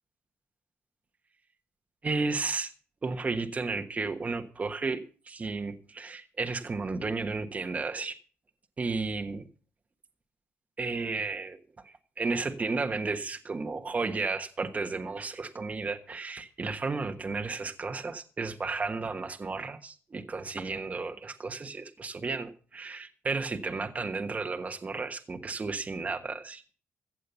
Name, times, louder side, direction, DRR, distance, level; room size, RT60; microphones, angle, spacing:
voice 1, 2.0-2.7 3.0-8.2 8.8-9.4 10.8-11.6 11.8-26.7, right 4 dB, 30° right, 5 dB, 1.3 m, -33 dB
15.0 x 7.5 x 6.9 m, 0.39 s
cardioid pair, 80°, 5 cm